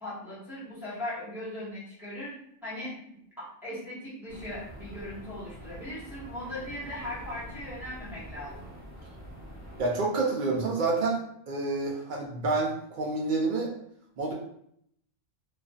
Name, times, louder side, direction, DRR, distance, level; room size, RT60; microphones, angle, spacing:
voice 1, 0.0-2.4 2.6-2.9 3.4-8.7, left 1 dB, ahead, -10 dB, 1.0 m, -39 dB
sound 1, 4.3-9.8, equal, 15° left, 0.7 m, -45 dB
voice 2, 9.8-11.2 11.5-13.7 14.2-14.3, right 3 dB, 75° right, -2 dB, 0.4 m, -28 dB
2.4 x 2.4 x 2.2 m, 0.70 s
omnidirectional pair, 1.4 m